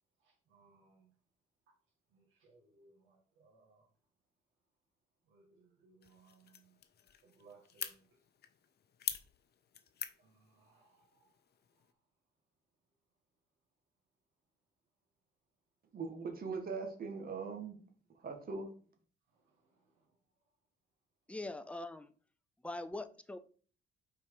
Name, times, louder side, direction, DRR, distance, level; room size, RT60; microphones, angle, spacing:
voice 1, 0.2-1.1 2.1-3.9 5.3-6.8 7.2-8.2 10.2-11.4 11.8-11.9 19.3-20.2, right 4 dB, 85° right, 1.9 m, -66 dB
sound 1, 6.0-11.9, left 9 dB, 55° left, 0.8 m, -47 dB
voice 2, 15.9-17.8 18.2-18.7, right 4 dB, 50° right, 1.8 m, -40 dB
voice 3, 21.3-22.1 22.6-23.4, left 2 dB, 5° left, 0.7 m, -42 dB
5.5 x 4.6 x 4.8 m
cardioid pair, 90°, 20 cm